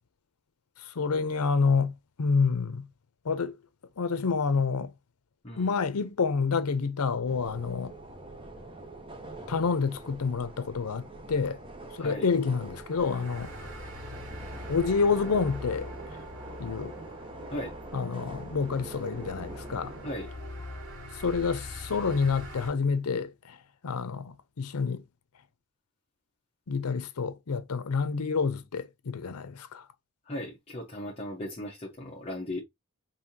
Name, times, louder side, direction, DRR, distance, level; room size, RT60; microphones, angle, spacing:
voice 1, 0.9-1.9 2.2-2.9 3.2-3.6 4.0-4.9 5.6-7.9 9.5-11.6 12.0-13.5 14.7-15.9 16.6-16.9 17.9-19.9 21.2-23.6 23.8-25.0 26.7-29.8, left 5 dB, 85° left, 0.6 m, -28 dB
sound 1, 7.3-20.1, right 2 dB, 25° right, 0.8 m, -44 dB
voice 2, 12.0-12.3 17.5-17.8 20.0-20.3 30.2-32.6, left 1 dB, 25° left, 1.0 m, -37 dB
sound 2, 12.9-22.7, left 1 dB, 90° right, 2.5 m, -43 dB
5.5 x 2.8 x 2.7 m
head